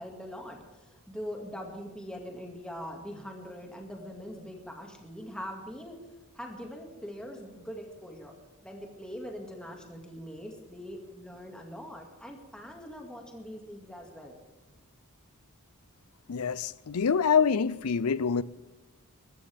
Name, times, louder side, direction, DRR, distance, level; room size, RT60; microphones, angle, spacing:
voice 1, 0.0-6.0 6.3-8.3 8.6-14.4, equal, 5° left, 2.1 m, -42 dB
voice 2, 16.3-18.4, left 6 dB, 70° left, 0.5 m, -26 dB
22.5 x 14.0 x 3.5 m
head